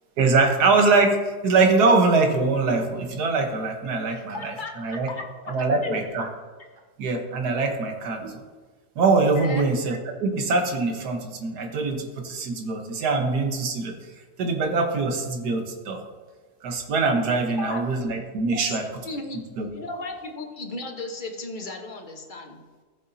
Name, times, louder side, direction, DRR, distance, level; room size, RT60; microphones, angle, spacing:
voice 1, 0.2-5.1 5.5-6.3 7.0-8.4 9.0-13.9 14.4-16.0 16.6-18.8 19.6-19.7, right 3 dB, 85° right, 4 dB, 1.7 m, -23 dB
voice 2, 4.1-5.6 5.8-6.0 9.4-9.7 17.5-17.8 18.8-19.4 19.7-22.6, left 2 dB, 35° left, 2 dB, 1.2 m, -35 dB
15.0 x 7.2 x 2.8 m, 1.4 s
omnidirectional pair, 1.7 m